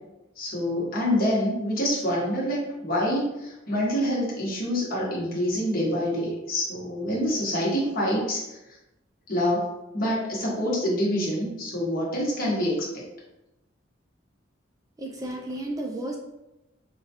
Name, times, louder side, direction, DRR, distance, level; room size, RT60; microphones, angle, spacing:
voice 1, 0.4-8.6 9.3-9.6 9.9-13.0, equal, 50° left, -4 dB, 1.1 m, -26 dB
voice 2, 15.0-16.2, right 1 dB, 20° right, 1 dB, 0.3 m, -32 dB
4.7 x 2.2 x 2.8 m, 0.94 s
head